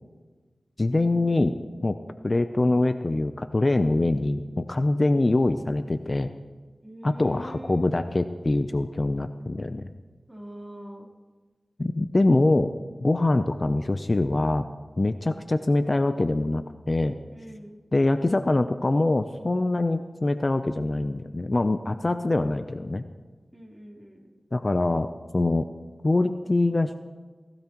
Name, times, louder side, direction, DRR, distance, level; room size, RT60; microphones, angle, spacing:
voice 1, 0.8-2.0 2.2-6.3 7.0-9.9 11.8-12.7 13.0-14.7 15.0-17.2 17.9-23.0 24.5-25.7 26.0-27.0, left 2 dB, 40° left, 9 dB, 0.6 m, -24 dB
voice 2, 6.8-7.8 10.3-11.1 17.3-17.8 23.5-24.3, equal, 15° right, -2 dB, 3.7 m, -43 dB
19.0 x 16.5 x 3.0 m, 1.3 s
wide cardioid pair, 55°, 0 cm